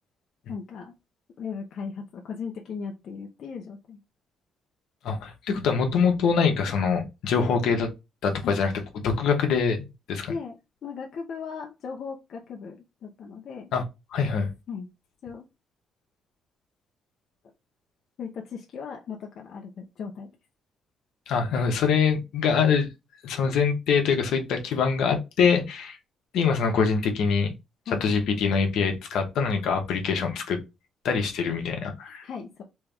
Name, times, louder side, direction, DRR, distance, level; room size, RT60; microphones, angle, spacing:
voice 1, 0.5-0.9 1.4-4.0 8.4-8.5 10.3-10.5 10.8-13.7 14.7-14.9 15.2-15.5 18.2-20.3 27.9-28.0 32.2-32.6, left 5 dB, 65° left, 0.7 m, -37 dB
voice 2, 5.0-7.9 8.2-8.7 9.0-10.3 13.7-13.8 14.1-14.5 21.3-22.9 23.2-26.0 26.3-27.5 28.0-30.6 31.0-32.2, left 6 dB, 80° left, 1.1 m, -24 dB
3.4 x 3.1 x 3.4 m
cardioid pair, 90°, 0 cm